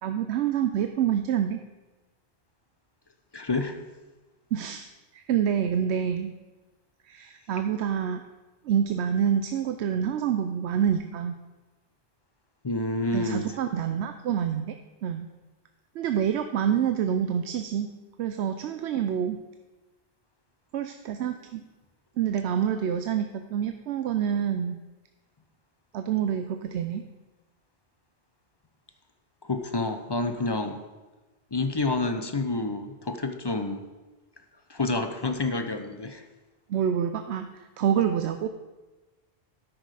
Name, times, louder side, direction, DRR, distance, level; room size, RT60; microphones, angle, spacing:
voice 1, 0.0-1.6 4.5-6.3 7.0-8.2 8.6-11.4 13.1-14.7 15.0-15.3 16.0-17.9 18.2-19.4 20.7-21.6 22.2-24.8 25.9-27.1 36.7-38.5, right 8 dB, 90° right, 8 dB, 0.9 m, -27 dB
voice 2, 3.3-3.8 12.6-13.6 29.4-30.8 31.5-33.8 34.7-36.2, left 2 dB, 30° left, 7 dB, 0.6 m, -28 dB
13.0 x 6.1 x 4.9 m, 1.2 s
omnidirectional pair, 1.1 m